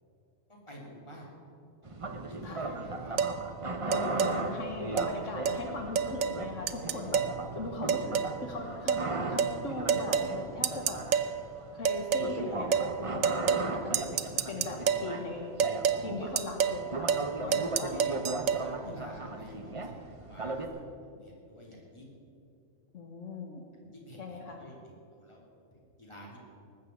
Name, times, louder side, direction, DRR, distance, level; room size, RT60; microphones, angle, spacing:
voice 1, 0.5-1.3 1.8-3.2 3.6-4.2 4.5-4.8 9.5-9.6 17.4-22.1 23.8-25.4 25.7-26.4, equal, 20° left, -2 dB, 3.2 m, -51 dB
sound 1, 1.8-20.7, right 2 dB, 30° right, 0.9 m, -37 dB
sound 2, 3.2-3.4 3.9-4.3 5.0-5.1 5.5-5.6 6.0-6.4 6.7-7.3 7.9-8.4 8.9-9.0 9.4-9.6 9.9-10.3 10.6-11.3 11.8-12.3 12.7-12.9 13.2-13.7 13.9-15.1 15.6-16.0 16.4-16.8 17.1-17.3 17.5-18.6, right 7 dB, 90° right, 1.1 m, -28 dB
voice 2, 3.8-7.2 7.5-11.0 11.7-14.0 14.4-15.5 16.0-17.1 17.4-17.9 18.8-19.1 22.9-23.6 24.2-24.6, left 3 dB, 70° left, 2 dB, 1.6 m, -39 dB
19.0 x 7.4 x 8.3 m, 2.5 s
omnidirectional pair, 1.3 m